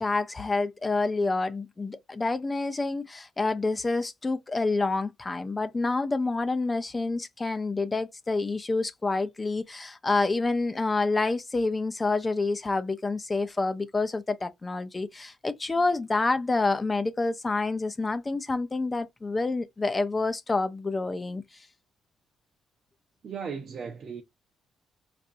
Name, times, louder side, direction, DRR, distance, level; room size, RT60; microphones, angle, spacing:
voice 1, 0.0-21.7, left 3 dB, 25° left, 0.6 m, -28 dB
voice 2, 23.2-24.2, right 6 dB, 50° right, 0.7 m, -36 dB
4.4 x 2.6 x 2.6 m
cardioid pair, 90°, 0 cm